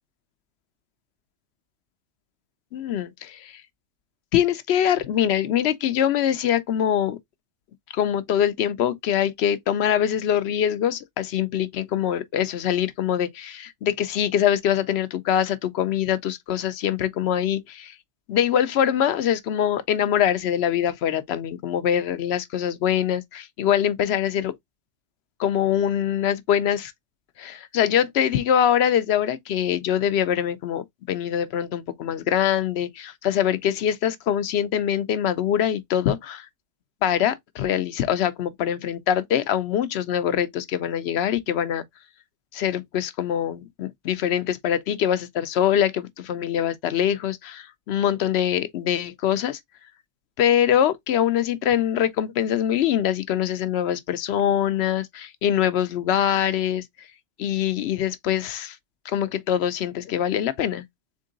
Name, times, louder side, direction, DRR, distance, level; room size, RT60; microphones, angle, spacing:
voice 1, 2.7-3.6 4.3-7.2 7.9-17.9 18.3-24.6 25.4-26.9 27.4-36.5 37.0-41.8 42.5-49.6 50.4-57.1 57.4-58.8 59.1-60.8, left 10 dB, 65° left, 0.7 m, -23 dB
3.7 x 3.6 x 3.8 m
omnidirectional pair, 1.3 m